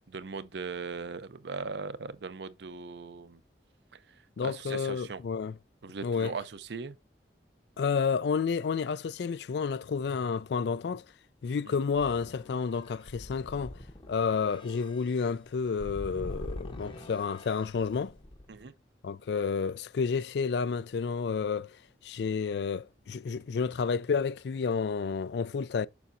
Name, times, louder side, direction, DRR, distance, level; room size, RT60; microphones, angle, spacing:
voice 1, 0.0-3.4 3.9-4.0 4.4-5.2 5.8-7.0 11.6-11.8 18.5-18.7, right 4 dB, 70° right, 0.6 m, -39 dB
voice 2, 4.4-5.6 6.0-6.3 7.8-11.0 11.4-13.8 14.1-18.1 19.0-21.8 22.0-25.9, left 5 dB, 70° left, 0.4 m, -30 dB
sound 1, 11.9-18.7, left 1 dB, 25° left, 0.8 m, -44 dB
7.0 x 5.9 x 2.6 m
head